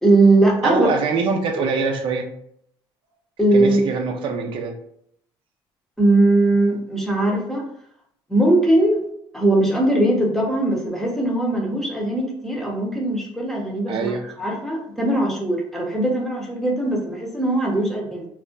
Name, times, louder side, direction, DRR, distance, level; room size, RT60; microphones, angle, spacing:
voice 1, 0.0-0.9 3.4-3.8 6.0-7.6 8.3-9.0 9.3-14.1 14.4-18.3, right 2 dB, 5° left, -1 dB, 0.7 m, -20 dB
voice 2, 0.6-2.3 3.5-4.8 13.9-14.2, right 4 dB, 65° right, 4 dB, 0.5 m, -23 dB
2.4 x 2.1 x 3.7 m, 0.70 s
cardioid pair, 125°, 9 cm